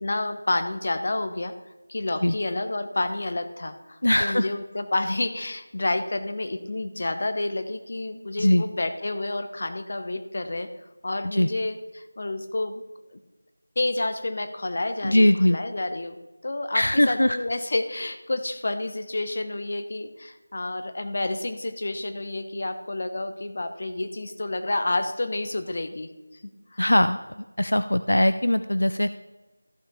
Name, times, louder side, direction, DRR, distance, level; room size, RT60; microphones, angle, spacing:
voice 1, 0.0-1.5 1.9-10.7 11.0-12.8 13.1-13.2 13.8-16.2 16.4-26.4 26.7-26.8, left 2 dB, 45° left, 9 dB, 1.0 m, -29 dB
voice 2, 4.0-4.5 8.4-8.6 11.3-11.5 15.0-15.6 16.7-17.4 26.8-27.2 27.6-29.2, left 1 dB, 80° left, 11 dB, 0.4 m, -20 dB
14.5 x 5.5 x 3.7 m, 1.1 s
figure-of-eight pair, 170°, 0 cm